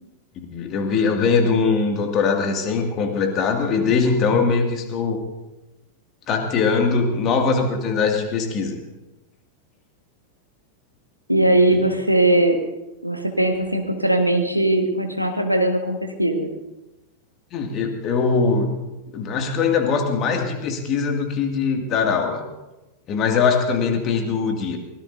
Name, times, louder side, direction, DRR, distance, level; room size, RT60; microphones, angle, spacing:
voice 1, 0.4-5.2 6.3-8.8 11.7-11.9 17.5-18.7 19.1-22.4 23.1-24.8, left 5 dB, 35° left, 4 dB, 2.2 m, -21 dB
voice 2, 11.3-12.6 13.0-16.5, right 1 dB, 90° right, 4 dB, 1.5 m, -20 dB
23.5 x 17.5 x 2.7 m, 1.0 s
figure-of-eight pair, 90°, 0 cm